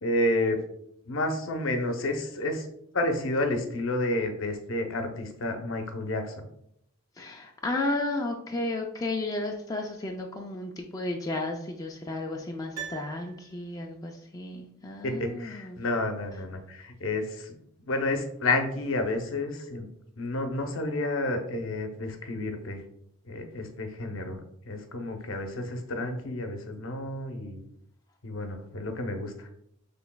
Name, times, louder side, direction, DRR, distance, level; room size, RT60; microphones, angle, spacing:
voice 1, 0.0-0.6 1.1-2.7 2.9-6.4 15.0-17.6 17.9-19.9 20.2-22.8 23.2-27.6 28.2-29.5, left 2 dB, 65° left, 5 dB, 0.7 m, -30 dB
voice 2, 7.2-15.8, left 2 dB, 15° left, 1 dB, 0.3 m, -33 dB
Piano, 12.7-14.0 14.3-14.4, right 8 dB, 75° right, 1.5 m, -42 dB
6.0 x 3.3 x 2.2 m, 0.73 s
head